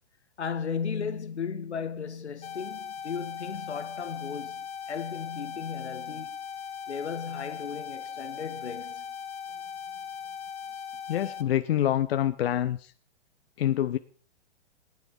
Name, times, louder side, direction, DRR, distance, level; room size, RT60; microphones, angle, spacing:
voice 1, 0.4-6.4 6.9-9.0, left 6 dB, 85° left, 1.4 m, -35 dB
sound 1, 2.4-11.4, left 7 dB, 20° left, 1.4 m, -39 dB
voice 2, 11.1-12.9 13.6-14.0, left 11 dB, 65° left, 0.8 m, -26 dB
18.0 x 9.8 x 5.3 m
hypercardioid pair, 115°, 33 cm